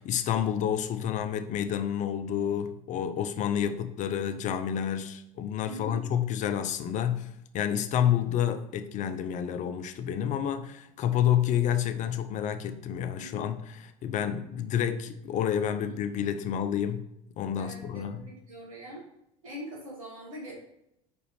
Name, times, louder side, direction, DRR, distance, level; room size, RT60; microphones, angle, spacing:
voice 1, 0.0-17.0 17.4-18.3, left 9 dB, 45° left, 0.6 m, -29 dB
voice 2, 5.7-6.0 13.2-13.5 15.8-15.9 17.6-19.0 19.4-20.5, equal, 80° right, 2.5 m, -42 dB
5.1 x 5.0 x 4.8 m
hypercardioid pair, 65°, 17 cm